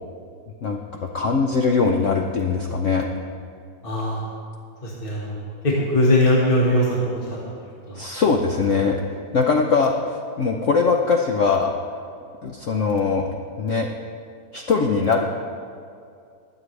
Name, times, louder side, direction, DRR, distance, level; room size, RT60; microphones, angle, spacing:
voice 1, 1.1-3.1 7.9-9.0 9.3-11.7 12.4-13.3 13.6-13.9 14.5-15.2, left 4 dB, 75° left, 2 dB, 0.7 m, -21 dB
voice 2, 3.8-4.2 4.8-5.4 5.9-7.2 7.9-8.0, left 1 dB, 30° left, -5 dB, 1.7 m, -20 dB
22.0 x 7.8 x 3.3 m, 2.4 s
omnidirectional pair, 2.2 m